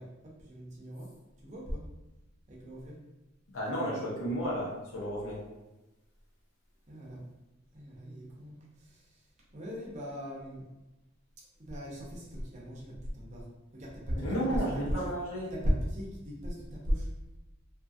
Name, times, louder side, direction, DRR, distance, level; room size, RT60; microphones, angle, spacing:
voice 1, 0.0-1.9 2.5-3.0 6.9-7.2 7.7-10.7 11.4-15.0 15.5-17.1, equal, 35° right, -4 dB, 0.6 m, -37 dB
voice 2, 3.5-5.4 14.2-15.5, equal, 70° left, -5 dB, 0.9 m, -33 dB
2.6 x 2.6 x 2.3 m, 1.0 s
head